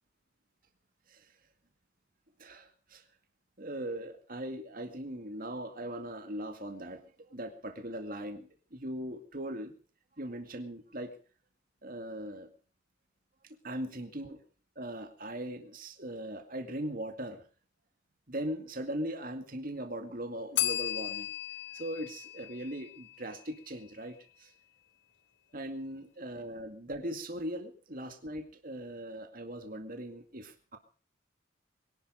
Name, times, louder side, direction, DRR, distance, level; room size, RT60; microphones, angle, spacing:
voice 1, 2.4-3.0 3.6-9.7 10.2-11.1 11.8-12.5 13.6-14.4 14.8-17.4 18.3-21.3 21.7-24.5 25.5-30.8, right 1 dB, 50° right, 6 dB, 2.2 m, -39 dB
Bell, 20.6-23.4, left 12 dB, 65° left, 3.5 m, -35 dB
23.0 x 11.5 x 5.2 m, 0.41 s
head